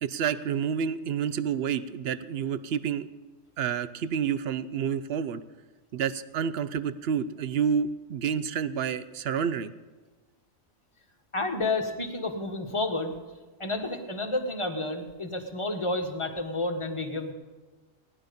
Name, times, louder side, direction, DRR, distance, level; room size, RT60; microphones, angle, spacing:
voice 1, 0.0-3.1 3.6-5.4 5.9-9.7, right 7 dB, 60° right, 14 dB, 0.7 m, -29 dB
voice 2, 11.3-13.1 13.6-17.3, left 2 dB, 25° left, 4 dB, 1.3 m, -30 dB
18.0 x 11.0 x 5.2 m, 1.2 s
omnidirectional pair, 1.4 m